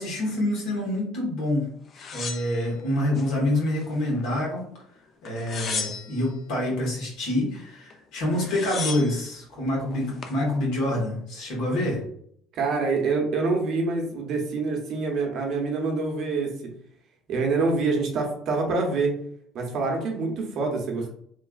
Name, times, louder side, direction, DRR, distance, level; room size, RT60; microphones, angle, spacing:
voice 1, 0.0-1.7 2.1-4.6 5.2-12.0, left 1 dB, 75° left, -2 dB, 1.3 m, -26 dB
sound 1, 1.9-3.3 3.7-4.5 5.3-6.3 7.9-8.0 8.2-9.2 9.9-10.4, left 5 dB, 45° left, 0.4 m, -35 dB
voice 2, 12.5-16.5 17.3-19.1 19.5-21.1, right 3 dB, 55° right, 2 dB, 0.8 m, -26 dB
3.2 x 2.3 x 2.4 m, 0.67 s
supercardioid pair, 90°, 0 cm